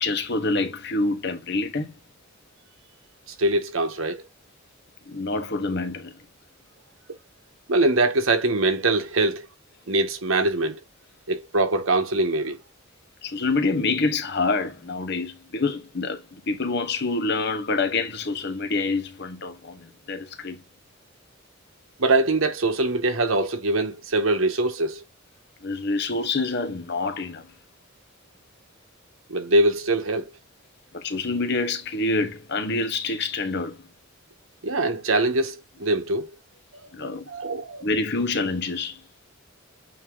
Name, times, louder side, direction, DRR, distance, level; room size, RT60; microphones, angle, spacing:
voice 1, 0.0-1.9 5.1-6.1 13.2-20.6 25.6-27.5 30.9-33.9 36.9-37.3 37.8-39.0, left 3 dB, 55° left, 1.2 m, -27 dB
voice 2, 3.4-4.2 7.7-9.5 9.9-10.8 11.3-12.6 22.0-25.0 29.3-30.3 34.6-36.3 36.8-37.9, right 2 dB, 85° right, 1.4 m, -23 dB
8.7 x 3.0 x 3.8 m
head